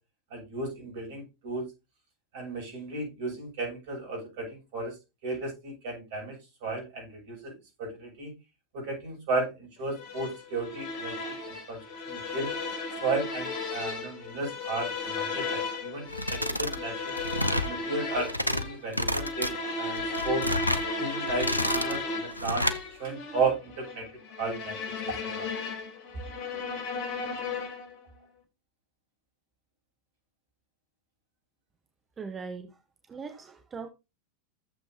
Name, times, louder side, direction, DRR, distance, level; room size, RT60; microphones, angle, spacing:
voice 1, 0.3-1.7 2.3-5.0 5.2-7.5 7.8-8.3 8.7-12.5 12.9-17.2 17.6-19.5 19.8-20.4 21.0-22.7 23.0-24.1 24.4-24.7 25.0-25.5, right 3 dB, 50° right, 1 dB, 7.8 m, -34 dB
sound 1, 10.0-28.0, left 3 dB, 45° left, 3.4 m, -35 dB
sound 2, 16.1-16.8 17.1-17.7 18.1-18.6 18.9-19.5 20.0-20.9 21.3-22.0 22.4-22.8, left 1 dB, 90° left, 0.8 m, -29 dB
voice 2, 32.2-33.9, right 5 dB, 20° right, 7 dB, 1.2 m, -40 dB
14.5 x 7.8 x 2.8 m, 0.26 s
figure-of-eight pair, 90°, 0 cm